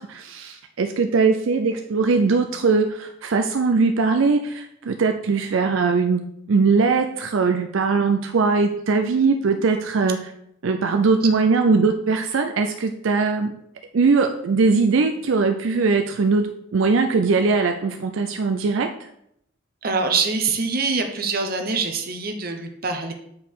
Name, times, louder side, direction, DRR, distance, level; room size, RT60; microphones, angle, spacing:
voice 1, 0.0-6.2 6.5-10.2 10.6-13.5 13.9-16.4 16.7-18.9, right 4 dB, 70° right, 5 dB, 0.5 m, -20 dB
voice 2, 19.8-23.1, right 4 dB, 45° right, 5 dB, 0.8 m, -24 dB
7.8 x 4.7 x 3.6 m, 0.75 s
head